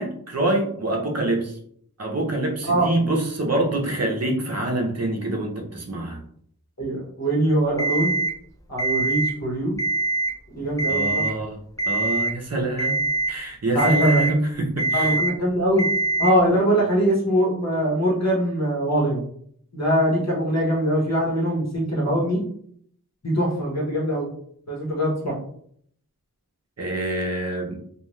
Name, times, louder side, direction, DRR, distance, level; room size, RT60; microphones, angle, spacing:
voice 1, 0.0-1.6 2.0-6.2 10.9-11.6 11.8-13.0 13.3-15.1 26.8-27.7, right 2 dB, 45° right, 0 dB, 0.8 m, -25 dB
voice 2, 6.8-8.1 8.7-9.7 10.5-11.3 13.7-14.2 14.9-15.9 16.2-19.2 19.7-22.4 23.2-24.3 24.7-25.3, right 1 dB, 45° left, -4 dB, 1.1 m, -22 dB
Alarm, 7.8-8.3 8.8-9.3 9.7-10.3 10.8-11.3 11.8-12.3 12.8-13.3 13.8-14.3 14.8-15.3 15.8-16.3, right 2 dB, 10° left, 0.4 m, -23 dB
2.5 x 2.4 x 3.1 m, 0.64 s
wide cardioid pair, 45°, 36 cm